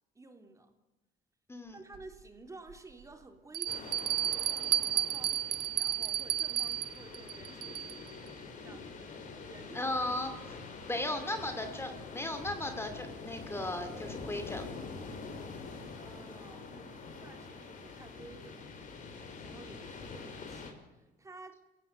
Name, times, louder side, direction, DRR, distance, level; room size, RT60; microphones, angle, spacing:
voice 1, 0.2-0.7 1.7-8.0 8.6-9.9 16.0-18.8 19.4-21.6, right 2 dB, 20° right, 5 dB, 3.3 m, -53 dB
Bell, 1.9-2.0 2.7-2.8 3.5-8.1, right 12 dB, 70° right, 0.7 m, -32 dB
sound 1, 3.7-20.7, left 4 dB, 50° left, 5.4 m, -45 dB
voice 2, 9.7-14.6, left 1 dB, 15° left, 7 dB, 2.4 m, -36 dB
28.0 x 16.5 x 9.7 m, 1.1 s
cardioid pair, 110°, 17 cm